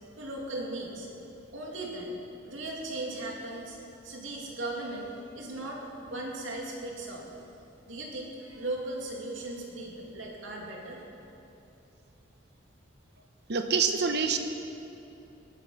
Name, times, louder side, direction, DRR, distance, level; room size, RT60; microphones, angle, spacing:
voice 1, 0.2-1.1 1.5-2.2 2.4-3.8 4.0-7.3 7.9-11.0, right 2 dB, 90° right, -2 dB, 2.7 m, -37 dB
voice 2, 13.5-14.4, right 5 dB, 60° right, 7 dB, 1.0 m, -26 dB
20.0 x 9.3 x 5.8 m, 2.9 s
head